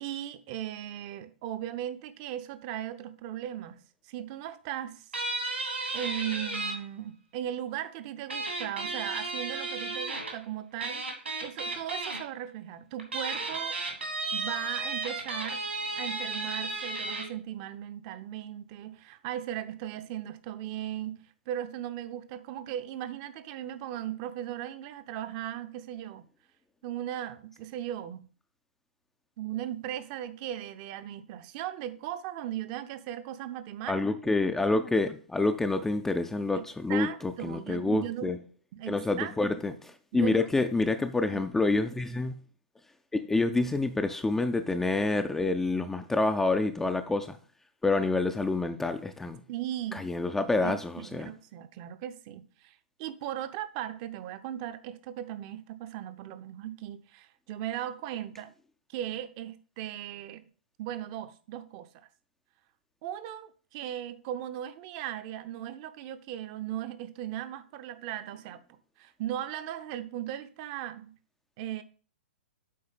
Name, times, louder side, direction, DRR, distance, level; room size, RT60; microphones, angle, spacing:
voice 1, 0.0-3.8 4.1-5.1 5.9-11.0 11.4-13.8 14.3-15.6 16.0-21.2 21.5-26.3 26.8-28.3 29.4-34.0 36.5-38.3 38.7-39.3 39.7-39.8 40.1-40.4 41.3-41.6 49.5-50.1 50.6-58.5 58.9-60.5 60.8-62.1 63.0-68.6 69.0-71.1 71.6-71.8, right 11 dB, 35° right, 0.6 m, -37 dB
sound 1, 5.1-6.7 8.3-10.4 10.8-12.2 13.0-17.3, right 2 dB, 75° right, 2.3 m, -34 dB
voice 2, 33.9-38.4 38.9-42.3 43.1-47.4 47.8-49.4 49.9-51.3, left 3 dB, 5° left, 0.4 m, -28 dB
8.6 x 3.9 x 5.1 m
figure-of-eight pair, 110°, 6 cm